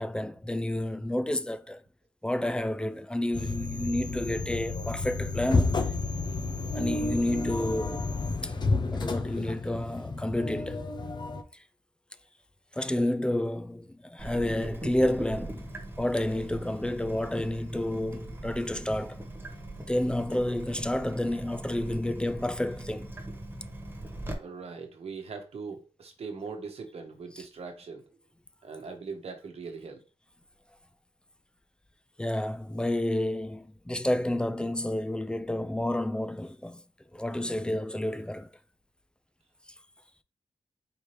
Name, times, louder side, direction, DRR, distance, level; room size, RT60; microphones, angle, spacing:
voice 1, 0.0-1.8 2.2-5.9 6.7-8.1 8.4-8.5 8.9-10.8 11.5-11.6 12.7-15.7 16.0-19.2 19.9-23.1 27.4-27.5 32.2-36.8 37.1-38.5, left 1 dB, 10° left, 0.4 m, -30 dB
sound 1, 3.3-11.4, left 3 dB, 45° left, 0.6 m, -31 dB
Water tap faucet / Drip, 14.2-24.3, right 1 dB, 20° right, 1.4 m, -40 dB
voice 2, 24.4-28.2 28.6-30.1, right 4 dB, 80° right, 1.0 m, -41 dB
4.8 x 2.8 x 3.3 m
wide cardioid pair, 85°, 10 cm